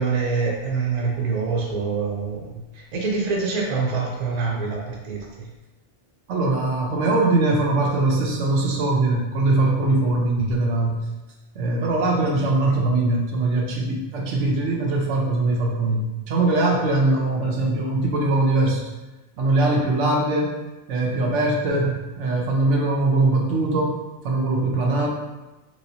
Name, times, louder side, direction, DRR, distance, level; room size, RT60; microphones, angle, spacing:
voice 1, 0.0-2.6 2.9-5.5, right 4 dB, 45° right, -3 dB, 0.6 m, -25 dB
voice 2, 6.3-11.0 11.5-18.8 19.4-20.5 20.9-24.0 24.2-25.1, right 2 dB, 85° right, -1 dB, 1.0 m, -21 dB
3.1 x 3.0 x 2.7 m, 1.1 s
omnidirectional pair, 1.2 m